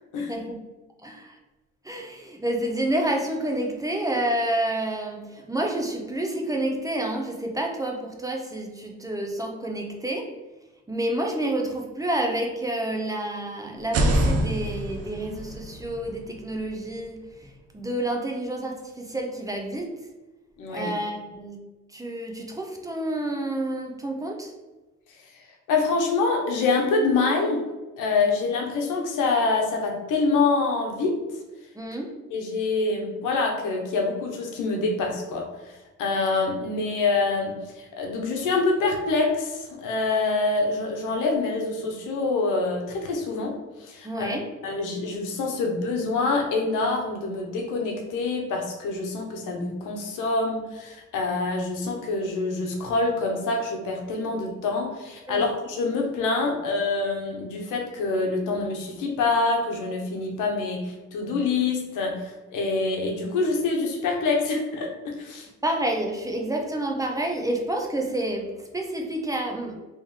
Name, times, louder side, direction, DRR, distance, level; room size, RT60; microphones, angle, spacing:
voice 1, 0.3-0.6 1.0-1.3 1.8-10.3 10.9-17.2 17.7-19.9 20.7-21.6 21.9-24.5 31.8-32.1 44.0-44.4 55.3-55.4 65.6-69.8, right 1 dB, 10° right, 1 dB, 0.6 m, -29 dB
sound 1, 13.8-17.6, right 1 dB, 55° right, 0.7 m, -27 dB
voice 2, 20.6-20.9 25.7-27.6 28.0-31.2 32.3-35.7 36.0-44.3 44.6-65.5, left 3 dB, 90° left, 1 dB, 0.9 m, -26 dB
3.1 x 3.0 x 3.6 m, 1.1 s
cardioid pair, 90°, 30 cm